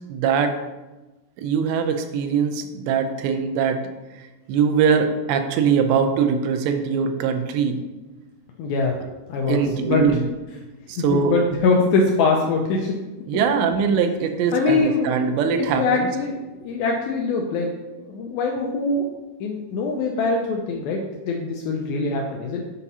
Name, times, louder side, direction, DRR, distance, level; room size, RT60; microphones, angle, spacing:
voice 1, 0.1-0.6 1.4-3.8 4.1-7.8 9.4-10.3 10.9-11.3 13.3-16.1, right 6 dB, 90° right, 6 dB, 2.9 m, -22 dB
voice 2, 8.6-9.0 9.3-10.0 11.1-12.9 14.5-15.1 15.6-17.7 18.0-19.1 19.4-22.6, left 4 dB, 90° left, 1 dB, 2.1 m, -23 dB
8.2 x 2.8 x 5.4 m, 1.1 s
omnidirectional pair, 4.9 m